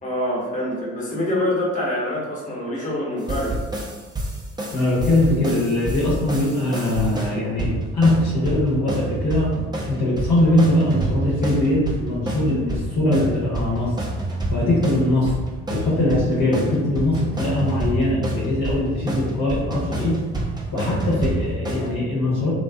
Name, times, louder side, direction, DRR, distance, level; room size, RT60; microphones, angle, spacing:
voice 1, 0.0-3.6, left 1 dB, 20° left, -6 dB, 1.2 m, -25 dB
sound 1, 3.3-21.9, right 1 dB, 10° right, 0.6 m, -28 dB
voice 2, 4.7-13.9 14.5-15.3 15.7-20.2 20.7-22.5, left 1 dB, 60° left, -7 dB, 1.1 m, -21 dB
2.5 x 2.3 x 2.3 m, 1.3 s
hypercardioid pair, 50°, 35 cm